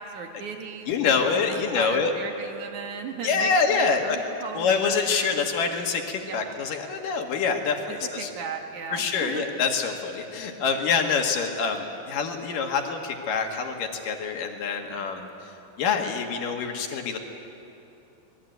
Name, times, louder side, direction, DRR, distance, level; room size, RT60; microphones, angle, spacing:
voice 1, 0.0-0.9 1.2-5.4 6.2-6.6 7.9-9.4 14.9-15.1, right 6 dB, 60° right, 3 dB, 2.8 m, -37 dB
voice 2, 0.9-2.1 3.2-4.2 4.5-8.3 8.9-15.3 15.8-17.2, left 5 dB, 70° left, 3 dB, 3.3 m, -26 dB
25.5 x 20.5 x 9.2 m, 2.8 s
omnidirectional pair, 4.2 m